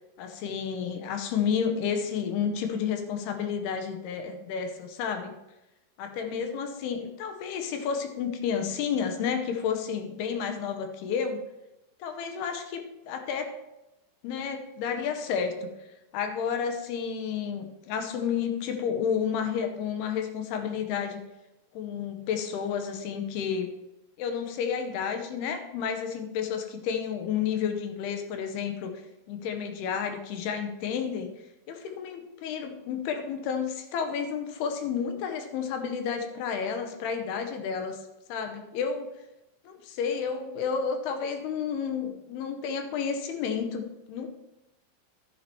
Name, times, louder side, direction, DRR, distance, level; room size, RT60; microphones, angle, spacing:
voice 1, 0.2-5.3 6.0-11.4 12.0-13.5 14.2-15.7 16.1-21.2 21.7-23.7 24.2-28.9 29.3-31.3 31.7-38.0 38.3-39.1 39.7-44.3, left 7 dB, 80° left, 6 dB, 2.8 m, -31 dB
12.0 x 9.5 x 2.9 m, 0.95 s
omnidirectional pair, 4.8 m